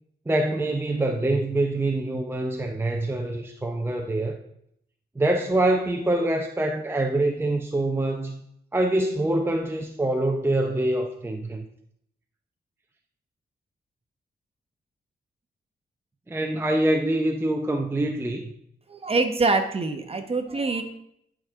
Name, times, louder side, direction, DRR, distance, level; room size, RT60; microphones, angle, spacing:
voice 1, 0.3-4.4 5.2-8.4 8.7-11.7 16.3-18.5, right 1 dB, 15° right, 3 dB, 0.6 m, -25 dB
voice 2, 18.9-20.8, right 3 dB, 35° right, 6 dB, 1.0 m, -24 dB
10.5 x 5.1 x 3.6 m, 0.73 s
wide cardioid pair, 110°, 18 cm